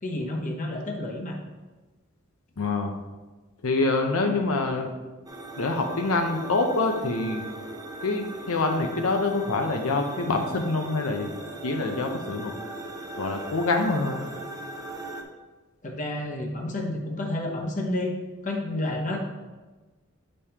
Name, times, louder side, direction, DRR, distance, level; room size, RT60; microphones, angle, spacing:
voice 1, 0.0-1.4 15.8-18.1 18.4-19.2, left 1 dB, 40° left, 1 dB, 0.9 m, -30 dB
voice 2, 2.6-2.9 3.6-4.9 5.6-7.4 8.0-11.3 11.6-12.5 13.2-14.2, left 3 dB, 85° left, 4 dB, 0.7 m, -25 dB
sound 1, 5.3-15.2, right 2 dB, 20° right, 0.6 m, -39 dB
8.1 x 5.3 x 2.9 m, 1.2 s
head